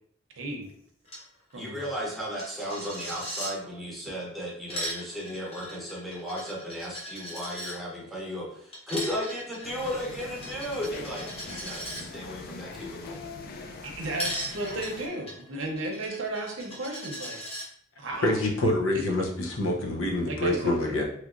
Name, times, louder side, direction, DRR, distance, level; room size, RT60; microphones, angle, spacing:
voice 1, 0.4-0.7 1.5-1.8 13.8-17.4 18.0-18.3 18.9-19.0 20.3-20.8, right 2 dB, 75° right, 1 dB, 0.7 m, -34 dB
Coin (dropping), 1.1-1.2 1.5-1.6 1.8-3.5 4.4-7.8 8.7-12.0 14.2-17.7, equal, 30° left, 0.9 m, -38 dB
voice 2, 1.5-13.2, equal, ahead, -5 dB, 0.8 m, -35 dB
sound 1, 9.6-15.1, left 3 dB, 50° left, 0.4 m, -42 dB
voice 3, 18.2-21.0, left 1 dB, 85° left, 0 dB, 0.7 m, -26 dB
3.1 x 2.9 x 2.5 m, 0.66 s
head